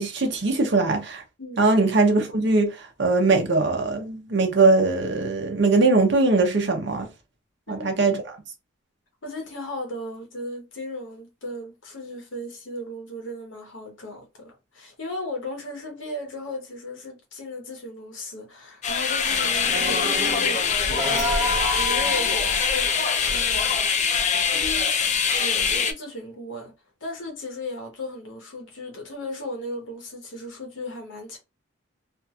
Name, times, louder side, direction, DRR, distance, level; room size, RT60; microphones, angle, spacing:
voice 1, 0.0-1.2 1.6-7.1 7.7-8.2, right 3 dB, 60° right, 0.8 m, -21 dB
voice 2, 9.2-23.8 24.5-25.0 25.4-26.7 27.0-31.4, left 1 dB, 75° left, 0.9 m, -36 dB
sound 1, 18.8-25.9, left 6 dB, 35° left, 0.4 m, -23 dB
sound 2, 19.6-23.1 23.8-23.9, equal, 30° right, 0.9 m, -30 dB
2.8 x 2.5 x 2.3 m
head